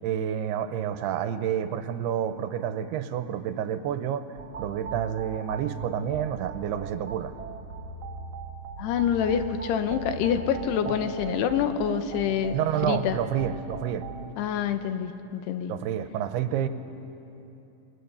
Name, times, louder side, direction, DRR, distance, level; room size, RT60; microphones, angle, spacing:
voice 1, 0.0-4.2 4.6-7.3 12.5-14.0 15.7-16.7, right 9 dB, 80° right, 10 dB, 2.8 m, -29 dB
sound 1, 4.4-14.3, right 5 dB, 60° right, 1.3 m, -38 dB
voice 2, 8.8-12.6 12.8-13.2 14.4-15.7, left 8 dB, 85° left, 9 dB, 3.1 m, -26 dB
27.5 x 22.0 x 7.0 m, 2.9 s
omnidirectional pair, 4.7 m